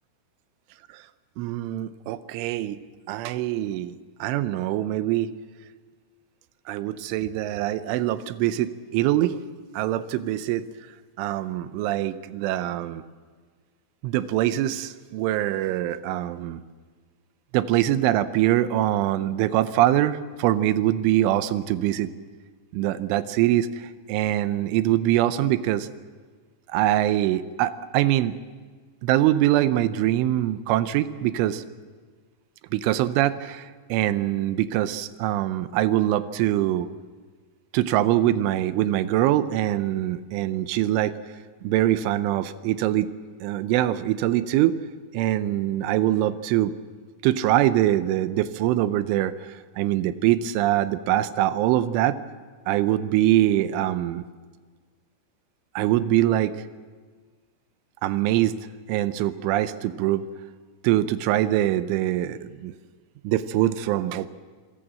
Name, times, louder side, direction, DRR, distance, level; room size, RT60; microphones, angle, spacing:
voice 1, 1.4-2.8 3.1-4.0 4.2-5.3 6.7-9.4 9.7-10.6 11.2-13.0 14.0-16.6 17.5-22.1 22.7-25.9 26.7-28.4 29.0-31.6 32.7-36.9 37.7-41.1 41.6-43.1 43.4-44.8 45.1-46.7 47.2-52.2 52.7-54.2 55.8-56.6 58.0-58.5 58.9-60.2 60.8-62.7 63.2-64.3, right 13 dB, 85° right, 13 dB, 3.3 m, -23 dB
26.5 x 17.0 x 7.7 m, 1.5 s
omnidirectional pair, 5.4 m